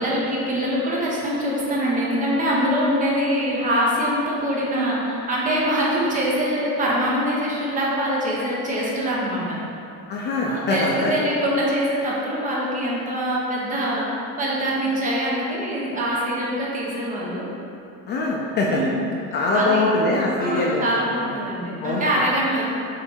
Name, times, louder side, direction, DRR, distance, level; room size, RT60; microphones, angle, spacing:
voice 1, 0.0-9.6 10.5-17.5 18.7-19.0 19.5-19.9 20.4-22.7, equal, 25° right, -5 dB, 1.0 m, -24 dB
voice 2, 10.1-11.1 18.1-18.8 19.3-20.9 21.8-22.1, left 2 dB, 30° left, -3 dB, 0.5 m, -22 dB
7.2 x 3.3 x 4.5 m, 2.6 s
cardioid pair, 175°, 33 cm